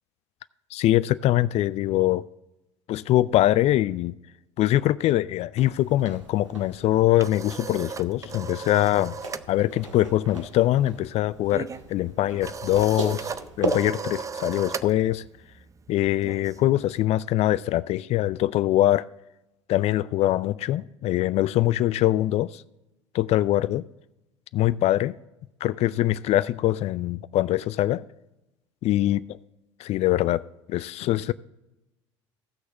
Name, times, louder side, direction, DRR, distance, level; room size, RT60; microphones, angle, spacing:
voice 1, 0.7-2.2 2.9-4.2 4.6-9.1 9.5-13.3 13.6-15.2 15.9-19.0 19.7-22.6 23.1-23.8 24.5-25.2 25.6-28.0 28.8-29.2 29.8-30.4 30.7-31.3, left 14 dB, 45° left, 0.4 m, -23 dB
sound 1, 5.6-13.9, right 2 dB, 90° right, 1.5 m, -37 dB
sound 2, 6.8-9.5 9.8-10.1 10.3-17.0, right 5 dB, 20° right, 0.5 m, -37 dB
16.5 x 6.4 x 4.0 m
figure-of-eight pair, 70°, 16 cm